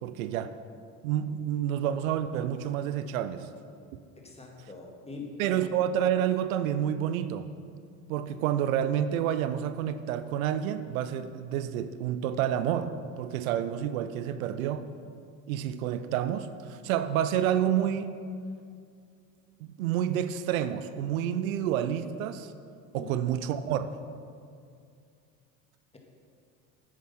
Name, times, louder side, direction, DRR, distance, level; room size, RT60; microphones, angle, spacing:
voice 1, 0.0-0.5 1.0-3.5 5.4-7.5 8.1-14.9 15.5-18.1 19.6-22.5 22.9-24.0, right 10 dB, 90° right, 12 dB, 0.6 m, -29 dB
voice 2, 4.2-5.6 22.9-23.1, left 3 dB, 15° left, 0 dB, 2.3 m, -43 dB
9.7 x 8.6 x 5.9 m, 2.4 s
hypercardioid pair, 75°, 40 cm